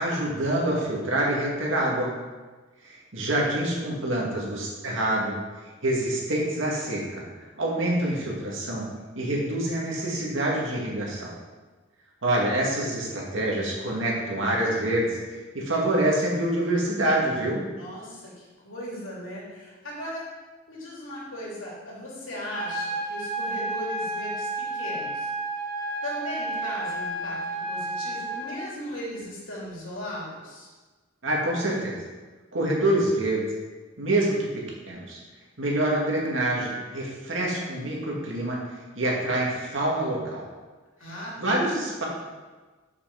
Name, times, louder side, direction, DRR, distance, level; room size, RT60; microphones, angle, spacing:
voice 1, 0.0-2.1 2.8-5.4 5.8-7.2 7.6-8.8 9.2-11.3 12.2-17.6 31.2-32.0 32.5-33.5 34.0-34.5 34.9-35.2 35.6-38.6 39.0-40.4 41.4-42.1, right 1 dB, 70° right, -3 dB, 2.3 m, -26 dB
voice 2, 17.7-20.3 20.7-25.3 26.0-30.7 39.5-39.7 41.0-41.6, left 1 dB, 85° left, -5 dB, 2.9 m, -37 dB
sound 1, 22.5-28.5, right 2 dB, 40° left, 2.5 m, -31 dB
6.7 x 6.0 x 6.1 m, 1.3 s
head